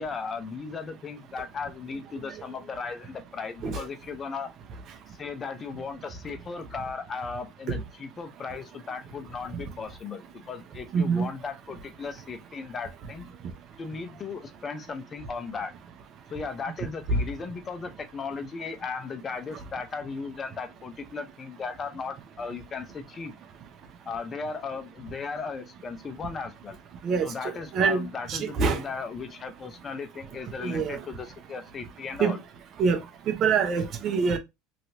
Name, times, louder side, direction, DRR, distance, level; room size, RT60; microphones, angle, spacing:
voice 1, 0.0-4.5 5.1-13.3 13.8-15.7 16.3-23.3 24.1-26.8 27.2-32.4, left 5 dB, 35° left, 0.7 m, -36 dB
voice 2, 10.9-11.3 17.1-17.2 27.0-28.9 30.6-31.0 32.2-32.4 32.8-34.4, right 5 dB, 50° right, 0.8 m, -26 dB
3.1 x 2.8 x 2.7 m
supercardioid pair, 95°, 0 cm